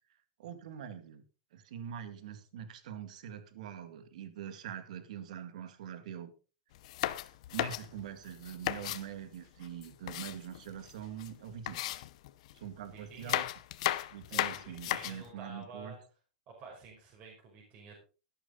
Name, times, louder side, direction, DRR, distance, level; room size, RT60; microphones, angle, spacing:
voice 1, 0.4-1.2 1.5-6.3 7.5-11.8 12.5-13.5 14.1-16.0, right 9 dB, 65° right, 11 dB, 2.1 m, -44 dB
sound 1, 6.8-9.1 9.6-10.9 11.2-11.3 11.7-12.6 13.1-15.3, left 15 dB, 55° left, 1.0 m, -35 dB
voice 2, 12.9-13.4 14.3-16.0 16.5-18.0, right 3 dB, 30° right, -2 dB, 5.3 m, -51 dB
13.5 x 11.5 x 3.9 m, 0.34 s
supercardioid pair, 160°, 4 cm